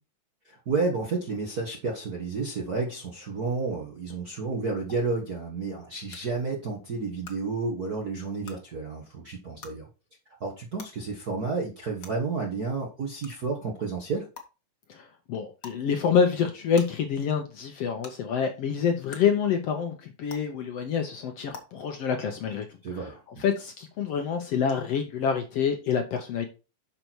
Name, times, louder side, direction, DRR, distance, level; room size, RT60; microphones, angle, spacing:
voice 1, 0.4-9.9 10.4-14.3 22.8-23.4, right 4 dB, 50° right, 1.1 m, -31 dB
sound 1, 4.9-5.0 6.1-6.2 7.2-7.3 8.4-8.5 9.6-9.7 10.8-10.9 12.0-12.1 13.2-13.3 14.3-14.4 15.6-15.8 16.7-16.8 18.0-18.1 19.1-19.2 20.3-20.4 21.5-21.6, left 5 dB, 50° left, 1.1 m, -42 dB
voice 2, 14.9-22.7 22.9-23.0 23.4-26.5, left 6 dB, 65° left, 1.6 m, -27 dB
6.7 x 5.8 x 4.5 m
omnidirectional pair, 3.6 m